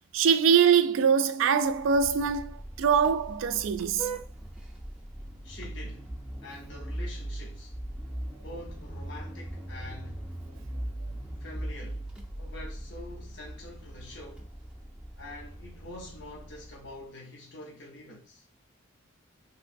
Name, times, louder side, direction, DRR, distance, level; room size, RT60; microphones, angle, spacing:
voice 1, 0.1-4.1, right 7 dB, 75° right, 0.3 m, -23 dB
Vehicle horn car horn honking, 1.6-17.0, right 1 dB, 5° right, 0.5 m, -40 dB
voice 2, 5.4-6.1 6.4-7.8 8.4-10.3 11.4-12.1 12.4-14.5 15.2-18.4, left 1 dB, 60° left, 0.8 m, -46 dB
3.0 x 3.0 x 2.5 m
head